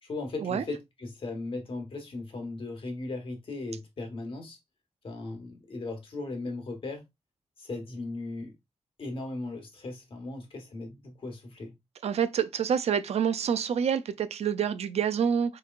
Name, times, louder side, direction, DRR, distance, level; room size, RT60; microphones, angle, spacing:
voice 1, 0.0-4.6 5.0-7.0 7.6-8.5 9.0-11.7, left 2 dB, 55° left, 1.3 m, -37 dB
voice 2, 12.0-15.6, right 8 dB, 75° right, 0.4 m, -27 dB
4.3 x 3.0 x 2.4 m
wide cardioid pair, 130°, 11 cm